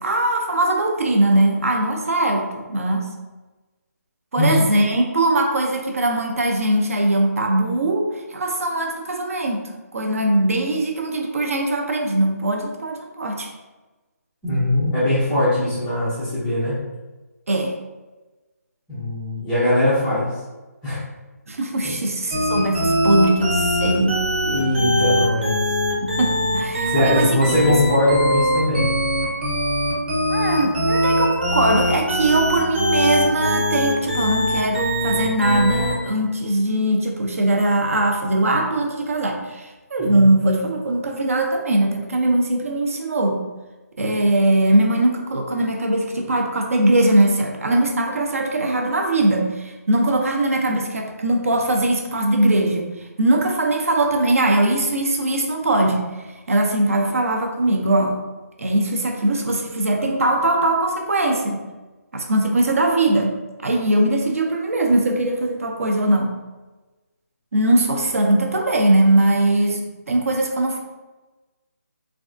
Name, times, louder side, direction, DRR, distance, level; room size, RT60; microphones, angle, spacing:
voice 1, 0.0-3.1 4.3-9.6 9.9-13.5 17.5-17.7 21.5-24.2 26.0-27.4 30.3-43.5 44.0-58.2 58.6-61.6 62.1-63.3 63.6-66.3 67.5-70.8, right 1 dB, 55° right, 2 dB, 0.5 m, -20 dB
voice 2, 14.4-16.8 18.9-20.3 20.8-21.0 24.4-25.6 26.8-28.9 40.0-40.3, left 1 dB, 5° left, -12 dB, 0.4 m, -20 dB
sound 1, 22.3-36.1, equal, 35° right, 0.8 m, -21 dB
3.3 x 2.3 x 2.5 m, 1.2 s
hypercardioid pair, 170°, 9 cm